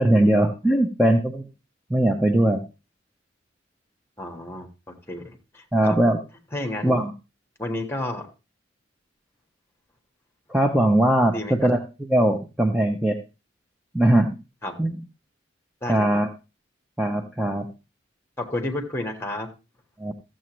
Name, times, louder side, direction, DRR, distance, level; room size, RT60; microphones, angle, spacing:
voice 1, 0.0-1.4 1.9-2.6 5.7-6.2 6.8-7.1 10.5-13.2 13.9-14.3 14.8-15.0 15.9-16.3 17.0-17.7 20.0-20.1, right 1 dB, 5° right, 3 dB, 0.6 m, -20 dB
voice 2, 4.2-6.0 6.5-7.0 7.6-8.3 11.3-11.5 14.6-14.7 15.8-16.2 18.4-19.5, left 1 dB, 15° left, 3 dB, 1.3 m, -31 dB
14.0 x 7.6 x 3.0 m, 0.29 s
head